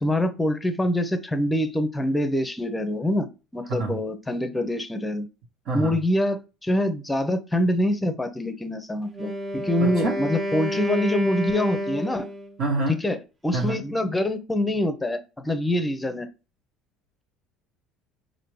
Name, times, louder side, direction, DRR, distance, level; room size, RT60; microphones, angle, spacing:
voice 1, 0.0-3.3 3.5-5.3 5.7-12.3 13.0-13.2 13.4-16.3, left 1 dB, 10° left, 0.7 m, -25 dB
voice 2, 5.6-6.0 9.8-10.2 12.6-13.0 13.5-13.8, right 2 dB, 60° right, 1.3 m, -26 dB
Wind instrument woodwind instrument, 9.1-12.6, equal, 30° right, 0.7 m, -30 dB
4.9 x 2.6 x 3.1 m
supercardioid pair, 95°, 0 cm